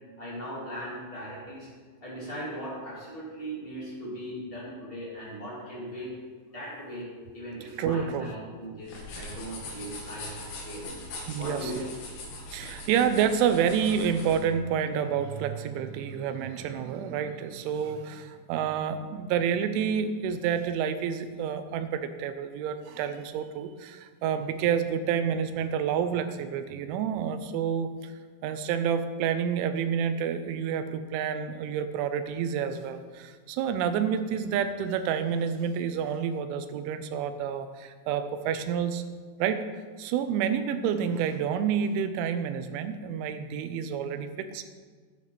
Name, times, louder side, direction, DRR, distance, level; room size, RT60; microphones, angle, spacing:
voice 1, 0.2-1.7 2.0-6.1 6.5-7.1 7.3-10.9 11.4-11.9, right 1 dB, 15° left, -7 dB, 2.3 m, -38 dB
voice 2, 7.8-8.3 11.3-11.9 12.5-28.1 28.4-39.0 39.4-39.6 40.0-44.6, right 8 dB, 85° right, 10 dB, 3.1 m, -29 dB
sound 1, 8.8-14.4, left 2 dB, 60° left, 3.2 m, -41 dB
11.0 x 9.0 x 4.2 m, 1.5 s
omnidirectional pair, 5.4 m